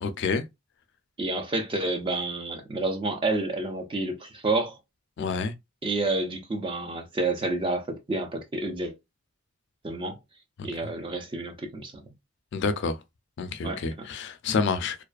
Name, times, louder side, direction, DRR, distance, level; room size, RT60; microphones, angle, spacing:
voice 1, 0.0-0.4 5.2-5.5 10.6-10.7 12.5-13.0 13.4-15.0, left 4 dB, 55° left, 0.3 m, -28 dB
voice 2, 1.2-4.8 5.8-8.9 9.8-10.2 10.6-11.9 13.6-14.1, right 2 dB, 25° right, 0.4 m, -29 dB
2.4 x 2.3 x 2.3 m
head